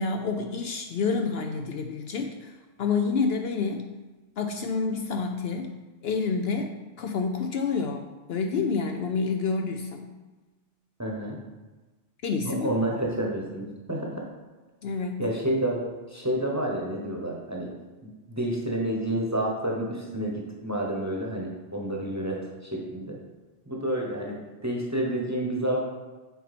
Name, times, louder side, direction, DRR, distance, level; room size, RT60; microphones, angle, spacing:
voice 1, 0.0-3.9 4.4-10.1 12.2-12.7 14.8-15.2, left 4 dB, 65° left, 4 dB, 0.7 m, -29 dB
voice 2, 11.0-11.4 12.4-14.3 15.2-15.8 16.1-17.7 18.3-23.2 23.7-25.8, right 1 dB, 15° right, -2 dB, 1.0 m, -29 dB
8.2 x 4.2 x 4.2 m, 1.2 s
omnidirectional pair, 1.2 m